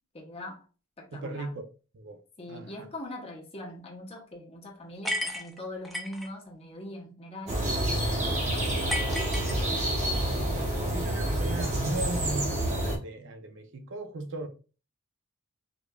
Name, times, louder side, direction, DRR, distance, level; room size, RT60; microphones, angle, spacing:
voice 1, 0.1-0.6 1.0-1.6 2.4-7.6 8.1-9.3, left 1 dB, 25° left, 0.8 m, -42 dB
voice 2, 1.1-1.6 1.9-2.2 2.5-2.7 10.1-14.5, right 2 dB, 55° right, 0.5 m, -37 dB
sound 1, 5.0-6.3 8.9-10.1, left 1 dB, ahead, 0.4 m, -33 dB
sound 2, 7.5-13.0, right 1 dB, 35° right, 0.9 m, -28 dB
4.9 x 2.5 x 2.2 m
head